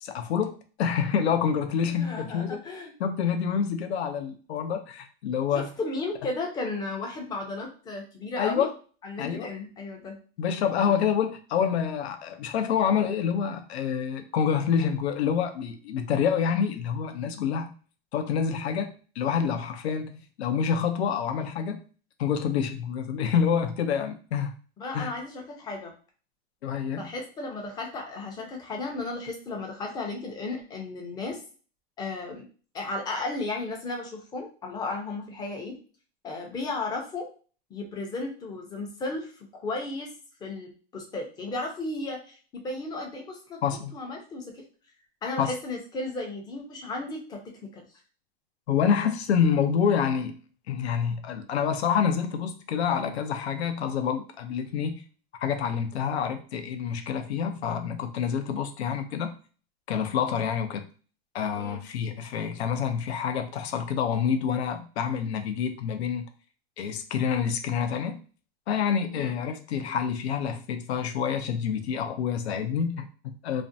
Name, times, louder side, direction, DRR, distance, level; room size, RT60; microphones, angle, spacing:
voice 1, 0.0-2.6 3.0-5.7 8.4-8.7 9.2-9.5 10.4-17.7 18.1-21.8 22.2-24.6 24.9-25.1 26.6-27.1 43.6-43.9 45.4-45.5 48.7-50.4 50.7-55.0 55.4-59.3 59.9-60.9 61.3-66.3 66.8-68.2 68.7-73.6, left 7 dB, 90° left, 7 dB, 0.5 m, -27 dB
voice 2, 1.9-2.9 5.5-8.7 9.0-10.2 24.8-25.9 27.0-31.4 32.0-32.4 32.7-35.8 36.2-37.3 37.7-40.1 40.4-43.6 43.9-44.6 45.2-47.8 61.6-61.8 69.2-69.3 73.5-73.6, left 2 dB, 15° left, 1 dB, 0.4 m, -34 dB
2.5 x 2.1 x 2.6 m, 0.38 s
supercardioid pair, 140°, 31 cm